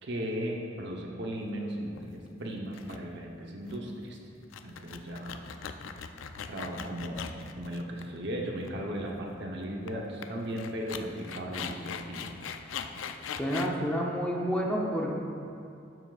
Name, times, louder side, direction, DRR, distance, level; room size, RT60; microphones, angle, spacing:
voice 1, 0.0-4.2 4.6-5.5 6.5-12.3, equal, 60° right, 0 dB, 0.9 m, -36 dB
sound 1, 2.0-2.3 2.7-3.0 3.3-3.4 3.7-3.9 4.4-8.3 8.6-8.7 9.9-10.0 10.2-10.3 10.6-13.8, left 7 dB, 75° left, 0.4 m, -40 dB
voice 2, 13.4-15.1, equal, 5° left, -2 dB, 0.8 m, -29 dB
12.0 x 7.0 x 2.5 m, 2.6 s
head